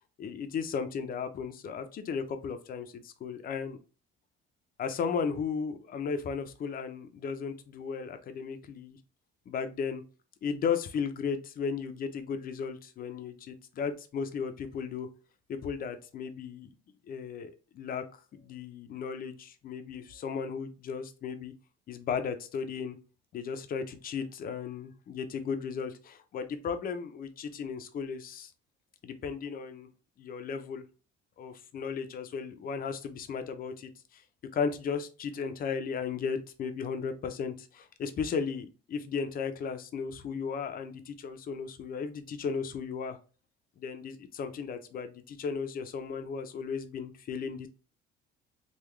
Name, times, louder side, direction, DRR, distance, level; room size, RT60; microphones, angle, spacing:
voice 1, 0.2-3.8 4.8-9.0 9.5-10.0 10.4-15.1 15.5-16.7 17.1-18.0 18.4-21.5 21.9-23.0 23.3-28.5 29.0-29.9 30.2-30.8 31.4-34.2 34.5-43.2 43.8-47.7, left 6 dB, 45° left, 8 dB, 0.7 m, -35 dB
3.9 x 2.4 x 3.1 m, 0.34 s
cardioid pair, 105°, 20 cm